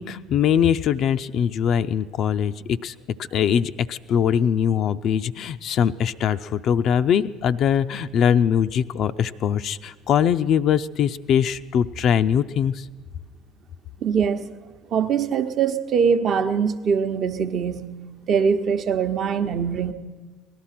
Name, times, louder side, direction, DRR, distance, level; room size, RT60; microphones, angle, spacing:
voice 1, 0.0-2.9 3.3-12.9, left 8 dB, 55° left, 11 dB, 0.4 m, -22 dB
voice 2, 14.0-14.4 14.9-17.9 18.3-19.9, right 6 dB, 50° right, 8 dB, 0.8 m, -22 dB
18.0 x 12.0 x 5.8 m, 1.3 s
hypercardioid pair, 60°, 0 cm